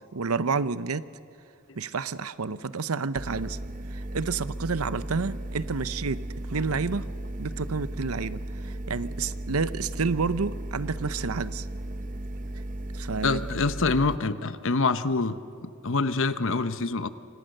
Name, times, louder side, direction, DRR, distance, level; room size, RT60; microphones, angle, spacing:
voice 1, 0.1-1.0 1.8-3.6 3.9-6.2 6.5-7.1 7.4-11.7 12.9-13.4, right 4 dB, 85° right, 15 dB, 0.8 m, -29 dB
sound 1, 3.2-14.2, right 1 dB, 40° right, 0.8 m, -35 dB
voice 2, 13.2-17.1, left 3 dB, 60° left, 12 dB, 0.9 m, -26 dB
28.5 x 25.5 x 6.7 m, 2.5 s
head